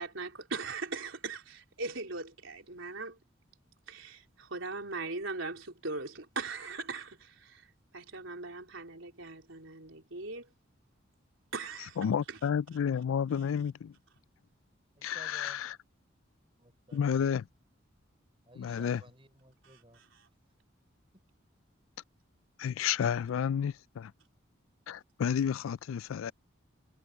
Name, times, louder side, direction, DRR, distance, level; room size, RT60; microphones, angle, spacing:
voice 1, 0.0-3.2 3.9-7.7 7.9-10.5 11.5-12.0 12.3-12.4, right 3 dB, 75° right, 3.8 m, -40 dB
voice 2, 12.0-13.9 15.0-15.7 16.9-17.4 18.6-19.0 22.6-24.1 24.9-26.3, left 8 dB, 85° left, 0.3 m, -31 dB
voice 3, 14.9-15.6 16.6-17.2 18.5-20.0 21.1-21.2, right 1 dB, 25° right, 5.6 m, -56 dB
head